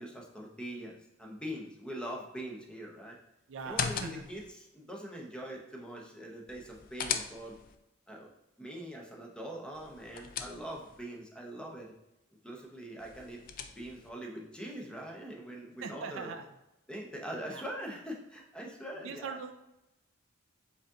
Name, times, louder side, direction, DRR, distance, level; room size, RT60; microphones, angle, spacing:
voice 1, 0.0-3.2 3.6-7.6 8.1-8.3 8.6-11.9 12.4-13.4 13.8-16.4 16.9-19.4, right 1 dB, 5° left, -1 dB, 0.7 m, -43 dB
voice 2, 3.5-4.3 15.8-16.5 17.5-17.6 19.0-19.5, right 5 dB, 65° right, 6 dB, 0.4 m, -41 dB
sound 1, 3.6-4.5 6.5-7.8 9.7-11.0 13.0-14.1, left 7 dB, 45° left, 0.4 m, -38 dB
4.9 x 2.7 x 3.6 m, 0.90 s
head